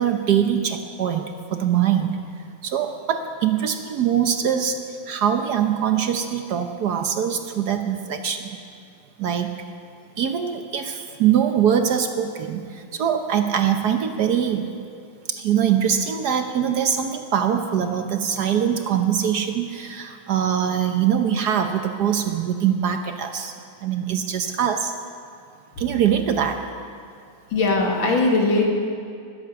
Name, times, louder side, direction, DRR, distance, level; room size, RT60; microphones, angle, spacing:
voice 1, 0.0-2.2 2.6-8.5 9.2-9.5 10.2-14.6 15.3-23.5 23.8-24.9 25.8-26.6 28.0-28.1, right 9 dB, 60° right, 6 dB, 1.2 m, -23 dB
voice 2, 27.5-28.7, left 3 dB, 75° left, 0 dB, 2.6 m, -19 dB
20.5 x 8.5 x 6.9 m, 2.3 s
omnidirectional pair, 2.1 m